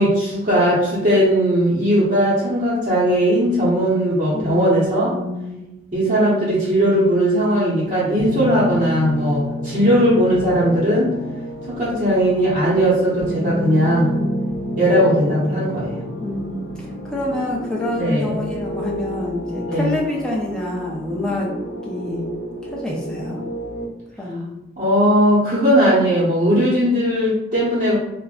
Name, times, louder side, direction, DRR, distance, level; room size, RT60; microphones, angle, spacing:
voice 1, 0.0-5.2 5.9-11.1 11.7-14.1 14.8-15.9 17.9-18.4 19.7-19.9 24.8-28.0, equal, 40° right, -10 dB, 0.7 m, -18 dB
voice 2, 4.3-5.6 16.2-21.5 21.8-22.2 22.7-23.4 24.2-24.6, left 1 dB, 5° left, -4 dB, 0.4 m, -27 dB
sound 1, 8.2-23.8, equal, 80° left, 0.7 m, -29 dB
2.4 x 2.1 x 3.5 m, 0.92 s
head